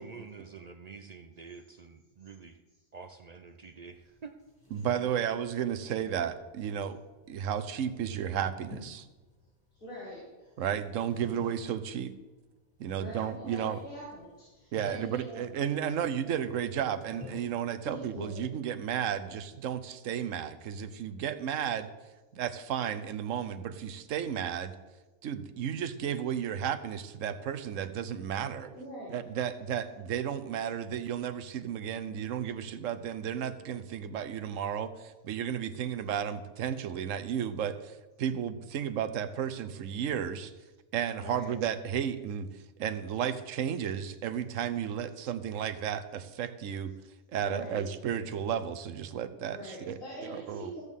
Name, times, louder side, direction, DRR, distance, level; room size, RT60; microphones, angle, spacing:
voice 1, 0.0-2.6 2.9-4.3, right 5 dB, 60° right, 7 dB, 0.4 m, -47 dB
sound 1, 3.8-19.7, left 1 dB, 15° left, 2.2 m, -53 dB
voice 2, 4.7-7.0 7.3-9.1 10.6-12.1 12.8-13.8 14.7-21.9 22.4-24.7 25.2-28.7 29.1-40.5 40.9-42.5 42.8-46.9 47.3-50.7, right 9 dB, 80° right, 11 dB, 1.1 m, -33 dB
voice 3, 9.8-10.5 13.0-15.4 17.8-18.4 28.7-29.1 41.2-41.5 47.4-47.8 49.5-50.8, equal, 85° left, -9 dB, 3.7 m, -44 dB
14.5 x 8.0 x 3.6 m, 1.2 s
omnidirectional pair, 1.4 m